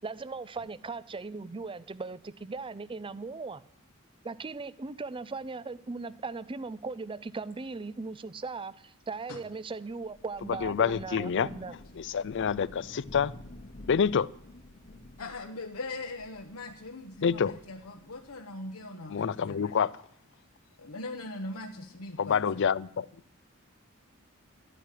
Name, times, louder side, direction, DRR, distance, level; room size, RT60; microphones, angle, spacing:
voice 1, 0.0-3.6 4.2-11.7, right 4 dB, 25° right, 0.5 m, -38 dB
Thunder / Rain, 9.9-18.5, left 1 dB, 40° left, 1.0 m, -50 dB
voice 2, 10.6-11.5 12.0-13.3 13.9-14.3 17.2-17.5 19.1-19.9 22.2-23.1, left 7 dB, 60° left, 0.4 m, -27 dB
voice 3, 15.2-19.7 20.8-22.6, left 2 dB, 85° left, 1.1 m, -41 dB
12.5 x 9.2 x 9.3 m
head